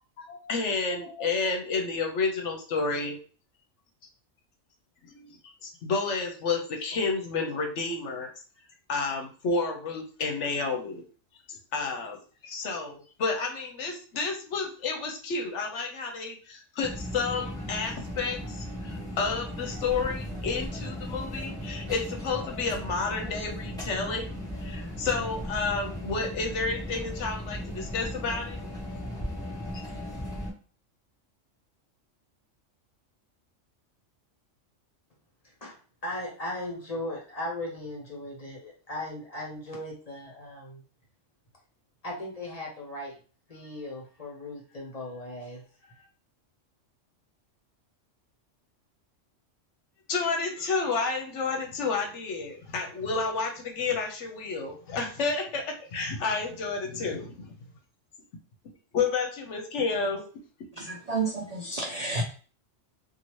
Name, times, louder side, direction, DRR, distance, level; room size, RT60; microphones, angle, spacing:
voice 1, 0.2-3.2 5.1-8.3 8.9-11.0 11.5-12.2 12.4-28.6 50.1-57.5 58.9-60.2, left 4 dB, 70° left, 2 dB, 1.0 m, -30 dB
sound 1, 16.8-30.5, equal, 5° left, 0.6 m, -37 dB
voice 2, 35.4-35.8 36.0-40.8 42.0-43.2 43.5-46.1, left 1 dB, 30° left, -2 dB, 1.1 m, -38 dB
voice 3, 60.8-62.2, right 3 dB, 60° right, 0 dB, 0.4 m, -30 dB
2.8 x 2.4 x 3.0 m, 0.38 s
omnidirectional pair, 1.3 m